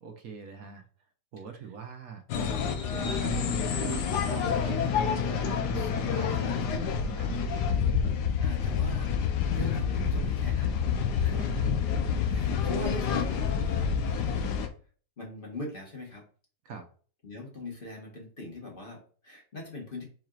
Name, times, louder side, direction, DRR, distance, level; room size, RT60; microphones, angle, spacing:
voice 1, 0.0-0.8 1.3-2.2 2.9-6.5 7.0-7.5 8.0-8.2 11.2-11.7 16.6-16.9, right 7 dB, 65° right, 5 dB, 1.1 m, -42 dB
sound 1, 2.3-14.7, left 6 dB, 85° left, 1.3 m, -28 dB
voice 2, 5.7-7.2 8.4-9.1 9.5-10.8 11.2-11.6 12.2-14.5 15.2-16.3 17.2-20.1, left 2 dB, 35° left, 0 dB, 1.4 m, -42 dB
4.8 x 4.4 x 2.4 m, 0.41 s
omnidirectional pair, 1.7 m